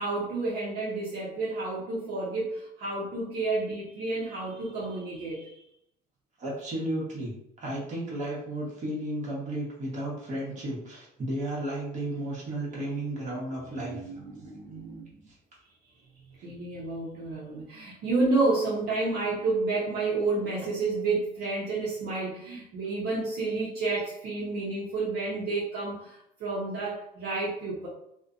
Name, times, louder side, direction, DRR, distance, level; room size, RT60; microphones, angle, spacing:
voice 1, 0.0-5.6 13.6-15.1 16.4-27.9, right 3 dB, 70° right, -6 dB, 0.8 m, -30 dB
voice 2, 6.4-14.0 15.3-15.4, right 1 dB, 45° right, -5 dB, 1.1 m, -33 dB
2.4 x 2.2 x 2.5 m, 0.76 s
cardioid pair, 110°, 17 cm